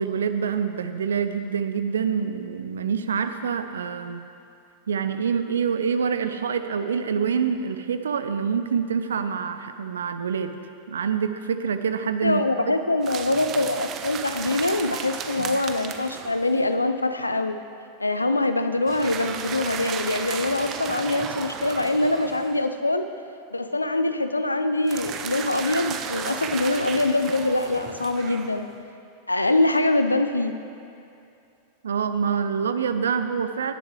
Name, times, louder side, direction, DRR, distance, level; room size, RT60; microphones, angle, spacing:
voice 1, 0.0-4.2 4.9-10.5 10.9-12.7 15.4-15.6 31.8-33.7, right 6 dB, 65° right, 10 dB, 0.6 m, -26 dB
voice 2, 12.2-17.6 18.0-23.0 23.5-28.7 29.3-30.5, left 2 dB, 80° left, 9 dB, 0.6 m, -24 dB
sound 1, 13.0-16.6 18.9-22.8 24.9-28.8, right 7 dB, 30° right, 0.7 m, -34 dB
17.5 x 10.5 x 3.3 m, 2.6 s
figure-of-eight pair, 90°, 0 cm